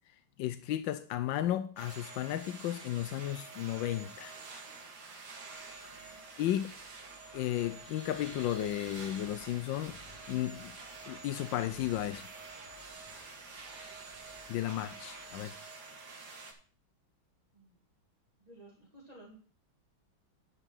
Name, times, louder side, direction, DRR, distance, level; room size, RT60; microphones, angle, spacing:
voice 1, 0.4-4.3 6.4-6.7 7.3-10.0 10.3-10.7 11.1-12.3 14.5-15.5, left 12 dB, 75° left, 1.3 m, -34 dB
sound 1, 1.8-16.5, right 4 dB, 55° right, 2.2 m, -48 dB
Wind, 5.5-15.6, left 1 dB, 45° left, 4.2 m, -59 dB
voice 2, 5.9-6.2 17.5-17.8 18.4-19.4, right 1 dB, 20° right, 2.2 m, -56 dB
11.0 x 5.2 x 5.8 m
omnidirectional pair, 2.2 m